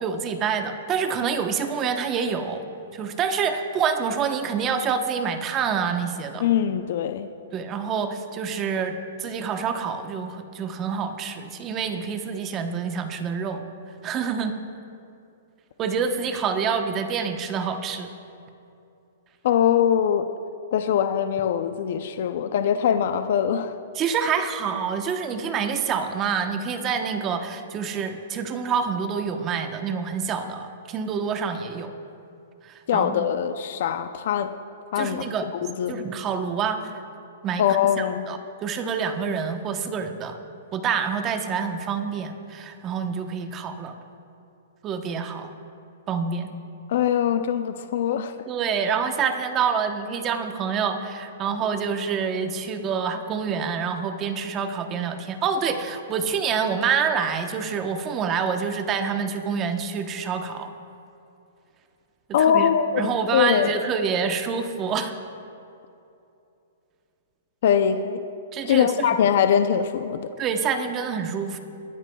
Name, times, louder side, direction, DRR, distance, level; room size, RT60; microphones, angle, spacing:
voice 1, 0.0-2.6 2.9-6.5 7.5-13.6 14.0-14.5 15.8-18.1 23.9-31.9 32.6-33.3 35.0-36.9 37.4-40.4 40.7-43.9 44.8-45.5 46.1-46.5 48.5-60.7 62.4-62.7 63.0-65.1 68.5-69.1 70.4-71.6, right 6 dB, 25° right, 7 dB, 0.9 m, -27 dB
voice 2, 6.4-7.3 19.4-20.3 20.7-23.7 32.9-34.5 34.9-35.2 35.6-36.0 37.6-38.2 46.9-48.3 62.3-63.8 67.6-68.2 68.7-70.3, left 8 dB, 60° left, 8 dB, 0.5 m, -22 dB
22.5 x 13.0 x 2.3 m, 2.7 s
hypercardioid pair, 140°, 0 cm